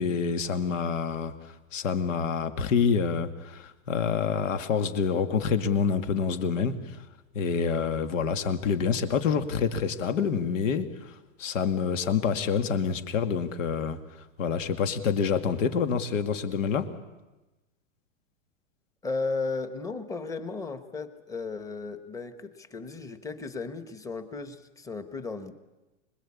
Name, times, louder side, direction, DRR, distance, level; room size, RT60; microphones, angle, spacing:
voice 1, 0.0-7.0 7.3-14.0 14.4-16.9, left 6 dB, 85° left, 8 dB, 2.3 m, -27 dB
voice 2, 19.0-25.5, left 3 dB, 10° left, 10 dB, 1.0 m, -35 dB
26.0 x 21.0 x 8.6 m, 1.1 s
supercardioid pair, 160°, 37 cm